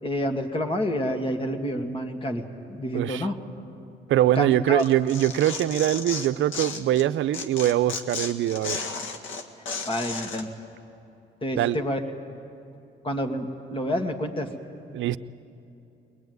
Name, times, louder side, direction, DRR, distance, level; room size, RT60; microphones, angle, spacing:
voice 1, 0.0-3.4 4.4-4.9 9.9-10.5 11.4-12.0 13.0-14.5, equal, 25° left, 5 dB, 2.2 m, -28 dB
voice 2, 2.9-3.3 4.1-8.8 11.6-11.8 14.9-15.2, right 12 dB, 75° right, 13 dB, 0.6 m, -23 dB
Tearing, 4.8-7.0 7.3-10.4, left 4 dB, 75° left, 1.8 m, -34 dB
22.0 x 21.5 x 9.5 m, 2.8 s
cardioid pair, 90°, 20 cm